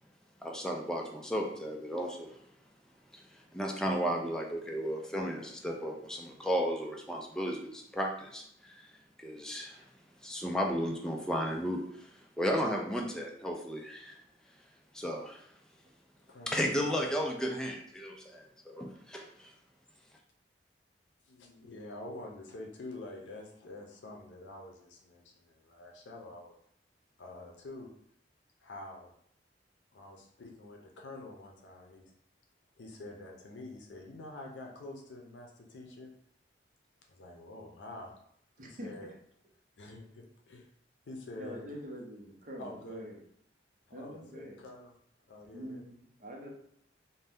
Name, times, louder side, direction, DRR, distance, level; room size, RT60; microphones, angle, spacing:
voice 1, 0.4-2.4 3.1-3.2 3.5-8.9 9.2-9.8 10.2-12.1 12.4-14.1 14.9-15.4 16.5-19.5, equal, 5° left, 0 dB, 0.3 m, -34 dB
voice 2, 16.3-16.8 21.3-26.5 27.2-27.9 28.6-29.1 29.9-32.1 32.8-36.1 37.1-38.1 38.6-39.1 39.8-40.7 41.1-41.7 42.6-43.1 43.9-45.0 45.3-45.8, left 2 dB, 85° left, 0 dB, 0.5 m, -47 dB
voice 3, 41.4-43.2 43.9-44.6 45.5-46.5, equal, 45° right, -1 dB, 0.6 m, -44 dB
2.6 x 2.1 x 3.3 m, 0.68 s
head